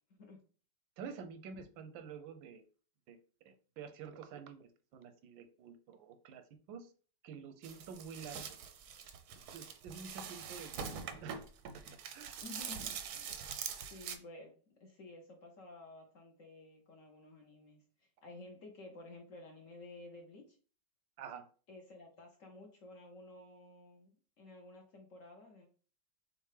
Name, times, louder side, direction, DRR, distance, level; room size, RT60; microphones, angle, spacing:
voice 1, 1.0-2.6 3.1-3.2 3.4-6.4 6.7-6.9 7.2-8.4 9.5-11.4 12.1-12.4 21.2-21.5, right 6 dB, 90° right, 9 dB, 1.4 m, -49 dB
sound 1, 7.6-14.2, right 7 dB, 70° right, 1.0 m, -44 dB
voice 2, 12.4-13.4 13.9-14.5 14.8-20.6 21.7-25.7, left 2 dB, 55° left, 2 dB, 0.9 m, -53 dB
6.5 x 2.5 x 3.3 m, 0.39 s
omnidirectional pair, 2.0 m